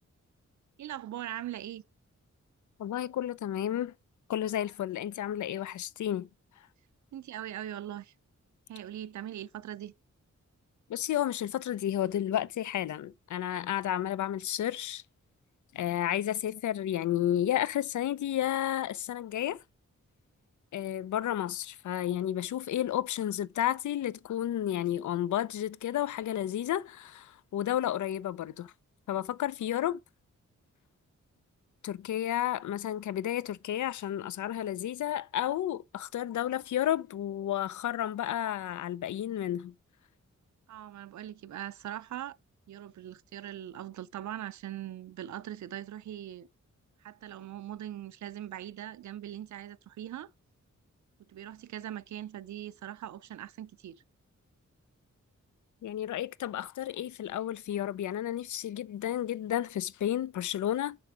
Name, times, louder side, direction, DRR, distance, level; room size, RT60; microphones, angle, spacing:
voice 1, 0.8-1.8 7.1-8.1 8.7-9.9 40.7-42.4 42.7-46.5 47.0-50.3 51.2-54.0, right 11 dB, 75° right, 0.5 m, -41 dB
voice 2, 2.8-3.9 4.3-6.3 10.9-15.0 15.7-19.6 20.7-28.7 29.1-30.0 31.8-39.7 55.8-61.0, left 11 dB, 80° left, 0.5 m, -32 dB
6.9 x 5.0 x 4.7 m
wide cardioid pair, 175°, 29 cm